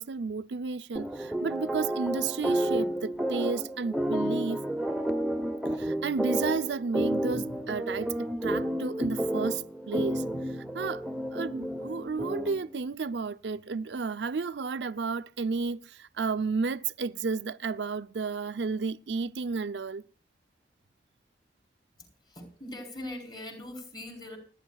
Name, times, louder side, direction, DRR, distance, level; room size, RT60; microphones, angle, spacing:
voice 1, 0.0-4.6 5.8-11.0 11.3-20.0, right 4 dB, 85° right, 0.6 m, -32 dB
sound 1, 1.0-12.7, right 1 dB, ahead, 0.9 m, -31 dB
voice 2, 22.0-24.4, left 1 dB, 25° left, 4.1 m, -41 dB
28.5 x 9.9 x 2.3 m
head